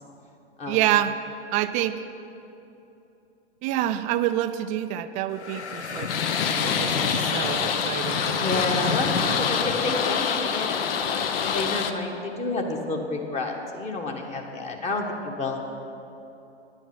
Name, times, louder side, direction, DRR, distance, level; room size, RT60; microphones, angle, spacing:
voice 1, 0.7-1.1 1.5-2.0 3.6-6.1 6.5-9.4, right 12 dB, 25° right, 10 dB, 0.4 m, -27 dB
sound 1, 5.3-10.3, left 5 dB, 85° left, 0.9 m, -32 dB
sound 2, 6.1-11.9, left 7 dB, 60° left, 0.9 m, -26 dB
voice 2, 8.3-15.6, left 2 dB, 20° left, 2 dB, 1.4 m, -30 dB
10.5 x 9.7 x 6.1 m, 2.8 s
hypercardioid pair, 110°, 33 cm